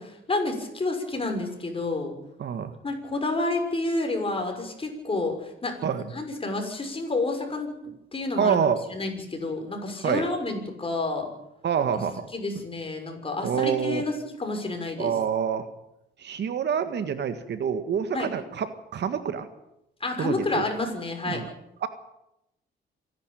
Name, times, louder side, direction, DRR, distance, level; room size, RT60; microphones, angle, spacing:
voice 1, 0.0-2.2 2.8-7.7 8.1-8.6 8.9-11.3 11.9-12.0 12.3-15.1 18.1-18.3 20.0-21.4, left 2 dB, 25° left, 4 dB, 6.4 m, -29 dB
voice 2, 2.4-2.7 5.8-6.0 8.4-8.8 10.0-10.2 11.6-12.3 13.4-14.0 15.0-15.6 16.2-18.7 18.9-19.5 20.2-20.6 21.3-21.5 21.8-21.9, right 7 dB, 60° right, 10 dB, 1.8 m, -26 dB
27.0 x 11.5 x 9.2 m, 0.86 s
cardioid pair, 90°, 20 cm